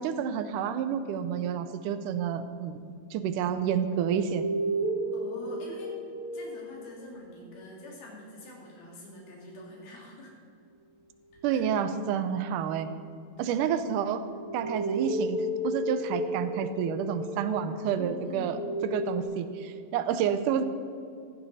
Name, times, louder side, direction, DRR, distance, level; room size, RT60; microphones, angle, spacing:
voice 1, 0.0-4.4 5.0-5.1 11.4-12.9 13.4-14.3 14.5-20.6, right 8 dB, 80° right, 10 dB, 1.9 m, -29 dB
sound 1, 3.2-7.3 11.4-12.8 13.7-19.2, right 1 dB, 40° left, 2.5 m, -34 dB
voice 2, 5.1-6.0 6.3-10.3 11.3-11.6 13.4-13.8 17.9-18.6, left 2 dB, 75° left, -3 dB, 4.8 m, -45 dB
15.0 x 15.0 x 4.2 m, 2.3 s
omnidirectional pair, 4.3 m